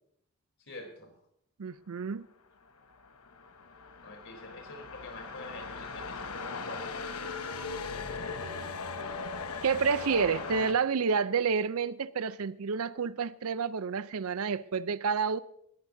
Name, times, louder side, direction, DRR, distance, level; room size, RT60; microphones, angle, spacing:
voice 1, 0.7-1.1 4.0-7.4, left 2 dB, 60° left, 3.5 m, -46 dB
voice 2, 1.6-2.3 8.4-8.7 9.6-15.4, right 5 dB, 75° right, 0.5 m, -29 dB
sound 1, 2.8-10.7, left 4 dB, 85° left, 1.0 m, -39 dB
20.5 x 12.0 x 2.7 m
head